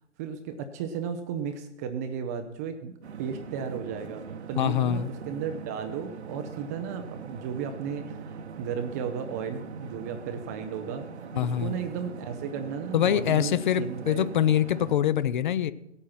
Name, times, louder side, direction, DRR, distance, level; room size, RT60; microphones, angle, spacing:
voice 1, 0.2-2.9 3.2-14.3, right 7 dB, 15° right, 0.4 m, -34 dB
sound 1, 3.0-14.9, right 6 dB, 60° right, 1.1 m, -41 dB
voice 2, 4.6-5.1 11.3-11.7 12.9-15.7, left 10 dB, 40° left, 0.6 m, -24 dB
17.0 x 8.9 x 5.8 m
figure-of-eight pair, 120°, 37 cm